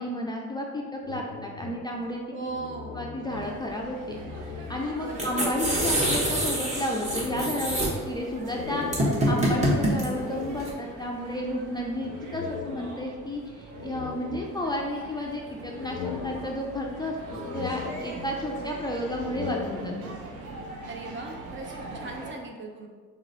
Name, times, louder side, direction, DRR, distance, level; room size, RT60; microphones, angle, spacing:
voice 1, 0.0-2.5 2.9-20.2, left 1 dB, 15° left, -1 dB, 0.4 m, -32 dB
sound 1, 1.0-3.8 4.1-5.2 5.6-11.0 12.0-13.3 13.7-15.0 15.4-16.9 17.3-18.6 19.0-20.3, left 5 dB, 90° left, 0.5 m, -39 dB
voice 2, 2.3-3.0 5.0-5.5 20.9-22.9, right 3 dB, 40° right, 1 dB, 0.7 m, -38 dB
sound 2, 3.3-22.3, right 2 dB, 80° right, 0.7 m, -43 dB
sound 3, 5.1-10.7, equal, 25° right, 1.1 m, -26 dB
3.2 x 3.0 x 3.9 m, 1.5 s
cardioid pair, 90°, 30 cm